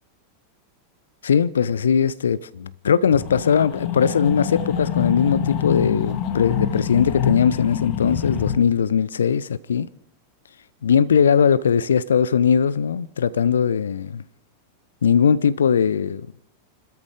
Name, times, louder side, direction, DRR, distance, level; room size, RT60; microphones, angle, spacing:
voice 1, 1.2-9.9 10.8-14.2 15.0-16.2, left 7 dB, 65° left, 0.5 m, -19 dB
sound 1, 3.1-8.6, left 8 dB, 40° left, 1.9 m, -26 dB
29.5 x 13.5 x 3.7 m
figure-of-eight pair, 90°, 0 cm